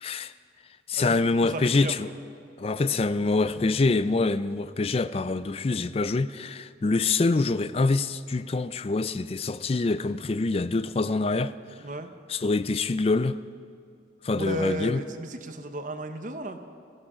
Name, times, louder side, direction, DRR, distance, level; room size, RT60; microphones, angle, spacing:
voice 1, 0.0-0.3 0.9-2.1 2.6-11.5 12.3-13.4 14.2-15.0, left 3 dB, 35° left, 0.4 m, -25 dB
voice 2, 1.4-2.0 11.8-12.1 14.3-16.6, equal, 45° right, 0.9 m, -34 dB
17.5 x 15.0 x 5.0 m
head